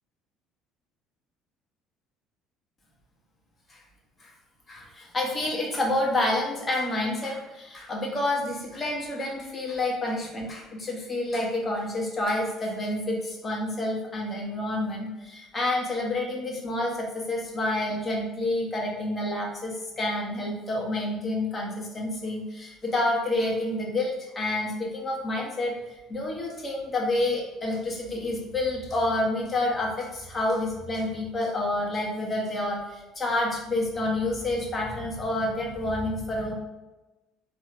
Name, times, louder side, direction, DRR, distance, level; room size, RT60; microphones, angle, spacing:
voice 1, 4.7-25.7 26.1-36.5, left 1 dB, 30° left, -1 dB, 1.2 m, -29 dB
3.7 x 3.0 x 3.2 m, 1.1 s
hypercardioid pair, 60°, 0 cm